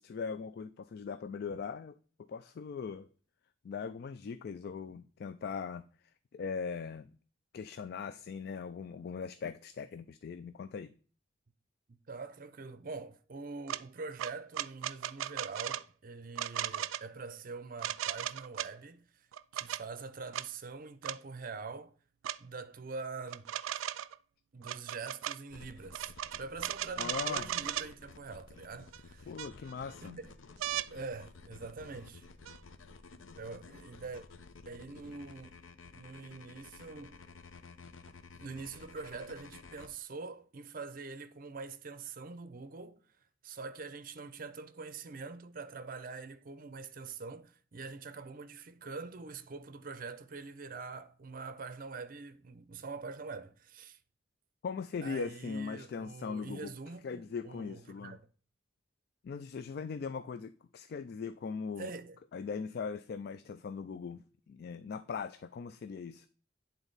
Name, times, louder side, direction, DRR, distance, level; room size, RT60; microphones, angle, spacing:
voice 1, 0.0-2.0 2.3-3.1 3.6-5.8 6.3-7.1 7.5-10.9 27.0-27.5 29.3-30.2 54.6-56.8 57.0-58.2 59.2-61.9 62.3-66.3, left 5 dB, 55° left, 0.3 m, -40 dB
voice 2, 11.9-19.3 19.5-21.9 22.4-23.5 24.5-29.3 30.0-30.3 30.9-32.3 33.4-34.3 34.6-35.6 35.9-37.2 38.3-43.0 43.4-54.0 55.0-58.2 61.8-62.2, right 4 dB, 45° right, 0.6 m, -44 dB
sound 1, 13.7-13.8 14.2-15.8 16.4-17.0 17.8-18.7 19.3-19.8 20.3-20.5 21.0-21.2 22.2-22.4 23.3-24.2 24.6-25.4 25.9-27.9 28.9-29.0 29.4-29.9 30.6-30.9 32.5-32.6, right 12 dB, 90° right, 0.3 m, -36 dB
sound 2, 25.5-39.9, left 4 dB, 90° left, 0.7 m, -53 dB
9.0 x 3.9 x 4.0 m
head